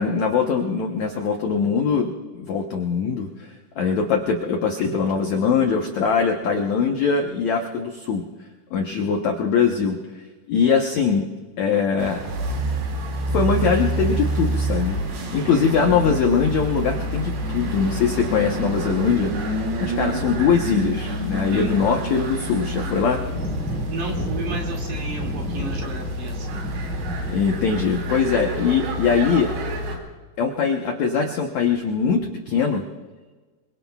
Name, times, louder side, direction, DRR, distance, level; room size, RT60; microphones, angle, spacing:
voice 1, 0.0-2.1 2.3-3.5 3.8-8.2 8.7-10.0 10.5-11.3 11.6-12.2 13.3-15.0 15.3-23.2 27.3-29.5 30.4-32.8, left 6 dB, 75° left, 2 dB, 1.6 m, -22 dB
sound 1, 12.0-30.0, right 1 dB, 75° right, 4.4 m, -28 dB
sound 2, 22.8-28.2, equal, ahead, 3.5 m, -33 dB
voice 2, 23.9-26.6, right 2 dB, 55° right, 0 dB, 3.6 m, -33 dB
26.5 x 23.0 x 2.4 m, 1.3 s
omnidirectional pair, 4.7 m